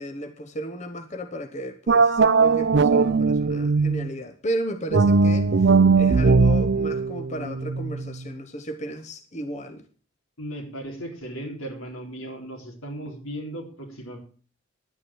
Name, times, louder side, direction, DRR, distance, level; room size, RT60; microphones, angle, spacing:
voice 1, 0.0-9.8, right 1 dB, 35° left, 7 dB, 0.9 m, -34 dB
sound 1, 1.9-4.1 4.9-8.2, right 4 dB, 55° right, 0.5 m, -19 dB
voice 2, 10.4-14.2, right 1 dB, 85° left, 1 dB, 3.9 m, -36 dB
11.0 x 9.6 x 6.2 m, 0.39 s
head